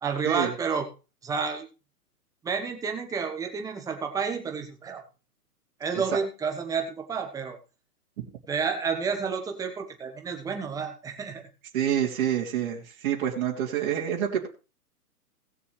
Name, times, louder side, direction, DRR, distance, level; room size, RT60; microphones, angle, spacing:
voice 1, 0.0-0.9 1.2-1.7 2.4-5.0 5.8-7.6 8.5-11.5, right 5 dB, 5° right, 4 dB, 1.2 m, -30 dB
voice 2, 11.7-14.5, right 9 dB, 40° right, -3 dB, 2.9 m, -27 dB
19.0 x 6.9 x 3.3 m, 0.32 s
hypercardioid pair, 140°, 46 cm